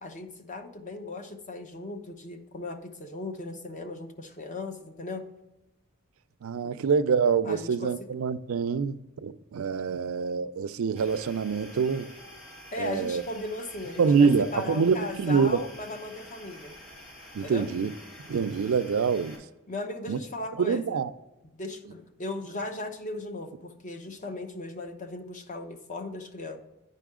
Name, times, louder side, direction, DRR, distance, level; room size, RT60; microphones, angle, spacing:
voice 1, 0.0-5.2 6.6-6.7 7.4-7.9 12.7-16.7 17.4-17.7 19.7-21.0 21.6-26.6, left 2 dB, 35° left, 0.7 m, -37 dB
voice 2, 6.4-12.1 12.8-13.2 14.0-15.6 17.3-17.9 18.3-19.4 20.1-20.2 20.6-21.1, right 5 dB, 80° right, 0.4 m, -25 dB
sound 1, 11.0-19.4, left 1 dB, 75° left, 2.4 m, -48 dB
9.2 x 5.4 x 3.6 m
head